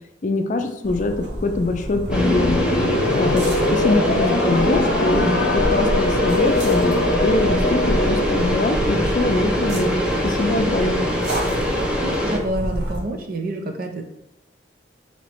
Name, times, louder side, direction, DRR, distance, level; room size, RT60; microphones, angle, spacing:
voice 1, 0.2-2.7 3.1-6.9 7.2-11.1, left 2 dB, 45° left, 5 dB, 0.4 m, -23 dB
sound 1, 0.8-13.0, equal, 75° right, 1.0 m, -29 dB
sound 2, 2.1-8.6, left 2 dB, 90° left, 0.6 m, -23 dB
sound 3, 2.1-12.4, equal, 5° right, 0.6 m, -23 dB
voice 2, 12.0-14.0, right 1 dB, 55° right, 4 dB, 0.6 m, -28 dB
3.1 x 2.9 x 4.4 m, 0.81 s
head